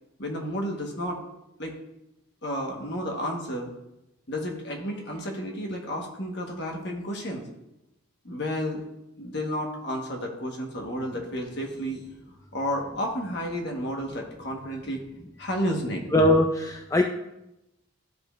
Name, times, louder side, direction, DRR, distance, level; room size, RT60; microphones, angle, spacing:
voice 1, 0.2-1.2 1.6-1.8 2.4-3.7 4.3-7.4 8.2-8.8 9.2-12.0 12.5-15.0 15.4-16.0, equal, 55° left, 0 dB, 1.4 m, -31 dB
voice 2, 16.1-17.0, left 1 dB, 15° left, 2 dB, 0.3 m, -20 dB
13.5 x 5.1 x 2.5 m, 0.90 s
head